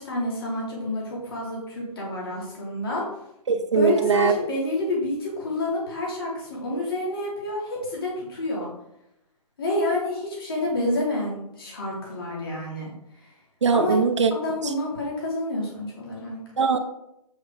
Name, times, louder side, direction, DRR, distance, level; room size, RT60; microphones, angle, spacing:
voice 1, 0.0-3.0 3.7-8.7 9.6-12.9 13.7-14.0 14.3-16.4, left 1 dB, 35° left, -4 dB, 2.9 m, -28 dB
voice 2, 3.5-4.3 13.6-14.3 16.6-16.8, right 5 dB, 45° right, 7 dB, 0.9 m, -20 dB
8.0 x 6.2 x 3.8 m, 0.83 s
hypercardioid pair, 180°, 21 cm